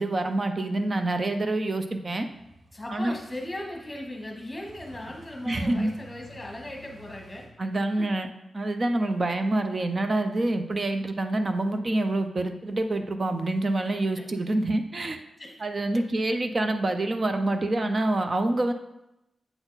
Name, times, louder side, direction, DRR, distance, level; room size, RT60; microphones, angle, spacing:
voice 1, 0.0-2.3 2.9-3.1 5.4-5.9 7.6-8.3 8.5-15.2 15.6-18.7, right 2 dB, 30° right, 7 dB, 0.5 m, -26 dB
sound 1, 2.3-7.5, equal, 85° right, 1.5 m, -51 dB
voice 2, 2.7-7.4 8.0-8.1 14.0-14.2 15.4-15.6 15.9-16.0, left 1 dB, 15° left, -1 dB, 1.4 m, -38 dB
7.9 x 4.1 x 3.9 m, 0.90 s
wide cardioid pair, 160°, 0 cm